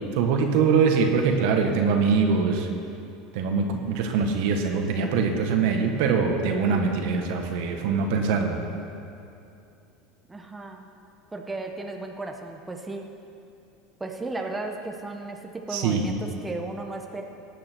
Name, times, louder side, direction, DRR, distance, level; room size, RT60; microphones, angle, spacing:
voice 1, 0.1-2.7 3.3-8.6 15.7-16.1, right 5 dB, 70° right, 3 dB, 1.5 m, -23 dB
voice 2, 4.9-5.3 10.3-10.9 11.3-13.1 14.0-17.2, right 2 dB, 10° right, 2 dB, 1.0 m, -35 dB
17.5 x 8.6 x 4.6 m, 2.7 s
supercardioid pair, 115°, 0 cm